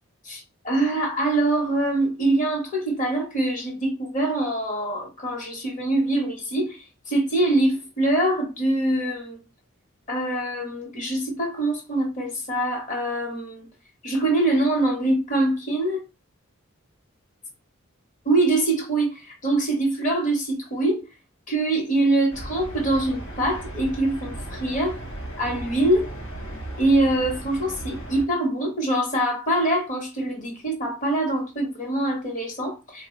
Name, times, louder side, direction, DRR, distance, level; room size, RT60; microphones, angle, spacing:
voice 1, 0.3-9.4 10.1-13.7 14.0-16.0 18.3-21.0 21.5-25.0 25.4-26.1 26.8-33.1, right 2 dB, 35° left, 1.0 m, -24 dB
sound 1, 22.3-28.3, right 1 dB, 80° left, 1.0 m, -36 dB
3.8 x 2.2 x 3.0 m
head